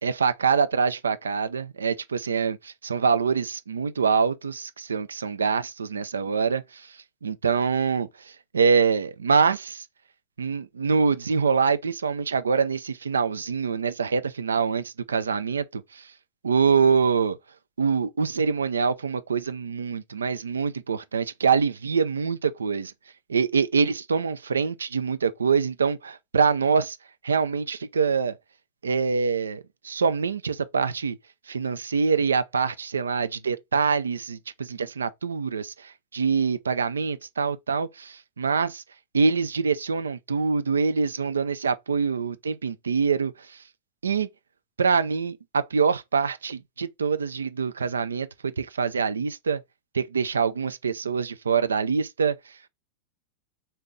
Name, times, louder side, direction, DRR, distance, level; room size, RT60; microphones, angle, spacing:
voice 1, 0.0-6.9 7.2-9.8 10.4-16.1 16.4-17.4 17.8-22.9 23.3-27.0 27.2-28.4 28.8-31.2 31.5-38.8 39.1-43.6 44.0-44.3 44.8-49.6 49.9-52.4, right 5 dB, 70° right, 0.5 m, -25 dB
4.1 x 3.4 x 3.6 m
figure-of-eight pair, 90°, 0 cm